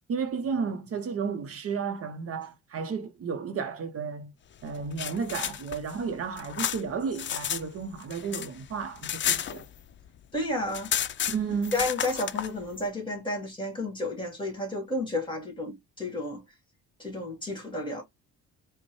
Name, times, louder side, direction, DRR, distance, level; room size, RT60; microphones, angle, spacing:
voice 1, 0.1-4.3 4.6-9.7 11.3-11.7, right 5 dB, 50° right, 0.8 m, -32 dB
sound 1, 4.7-7.6 7.9-10.1 10.4-10.5 10.7-12.5, left 9 dB, 40° left, 0.4 m, -32 dB
voice 2, 10.3-10.9 11.7-16.4 17.0-18.0, left 1 dB, 15° left, 2.2 m, -31 dB
5.1 x 2.2 x 3.0 m
cardioid pair, 90°, 30 cm